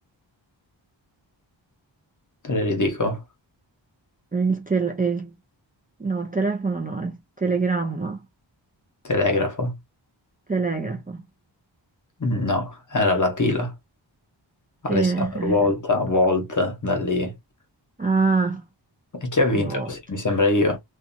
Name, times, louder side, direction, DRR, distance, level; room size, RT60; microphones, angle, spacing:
voice 1, 2.4-3.2 9.0-9.8 12.2-13.7 14.8-17.3 19.1-20.8, left 2 dB, 40° left, 0.9 m, -23 dB
voice 2, 4.3-5.4 6.0-8.2 10.5-11.2 14.9-15.6 18.0-18.7 19.5-19.9, right 4 dB, 20° right, 0.5 m, -25 dB
2.7 x 2.3 x 2.6 m
wide cardioid pair, 95°, 47 cm